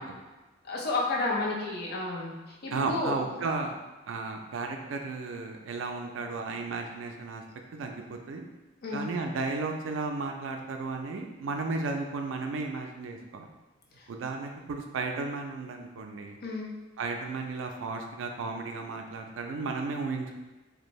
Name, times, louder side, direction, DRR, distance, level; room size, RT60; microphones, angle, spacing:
voice 1, 0.7-3.2 8.8-9.1 14.0-14.1 16.4-16.7, left 2 dB, 55° left, -2 dB, 0.5 m, -31 dB
voice 2, 2.7-3.8 4.1-7.4 7.7-8.4 8.9-13.5 14.1-16.4 17.0-20.4, right 3 dB, 75° right, 3 dB, 0.4 m, -34 dB
2.5 x 2.1 x 3.0 m, 1.2 s
head